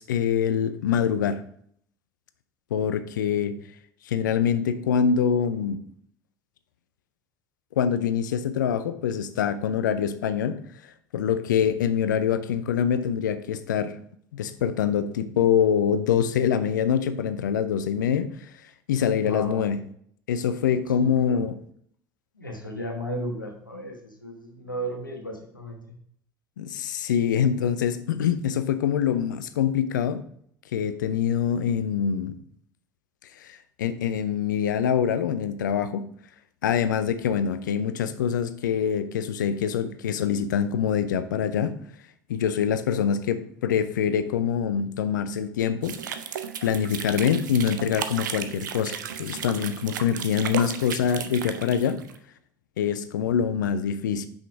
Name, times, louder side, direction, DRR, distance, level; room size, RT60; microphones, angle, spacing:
voice 1, 0.0-1.4 2.7-3.5 4.1-5.8 7.8-10.6 11.1-13.9 14.3-18.3 18.9-19.8 20.3-21.6 26.6-30.2 30.7-32.4 33.4-36.1 36.6-41.8 42.3-46.0 46.6-52.0 52.8-54.3, left 8 dB, 70° left, 0.5 m, -25 dB
voice 2, 19.2-19.6 21.0-21.4 22.4-26.0, equal, 85° left, 1.1 m, -35 dB
sound 1, 45.8-52.2, right 8 dB, 70° right, 0.5 m, -35 dB
5.8 x 5.3 x 4.7 m
figure-of-eight pair, 65°, 10 cm